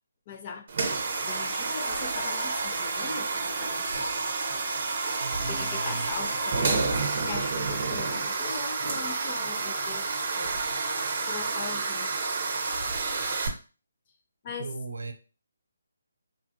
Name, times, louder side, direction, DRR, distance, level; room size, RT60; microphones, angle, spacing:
voice 1, 0.3-0.6 1.2-4.2 5.5-7.0 7.2-10.6 11.2-12.1 14.4-14.7, left 5 dB, 30° left, 4 dB, 0.6 m, -40 dB
sound 1, 0.7-13.5, right 3 dB, 45° right, 0.7 m, -29 dB
voice 2, 5.2-6.1 14.5-15.1, right 3 dB, 80° right, 7 dB, 0.6 m, -37 dB
3.6 x 2.3 x 2.7 m, 0.35 s
figure-of-eight pair, 155°, 0 cm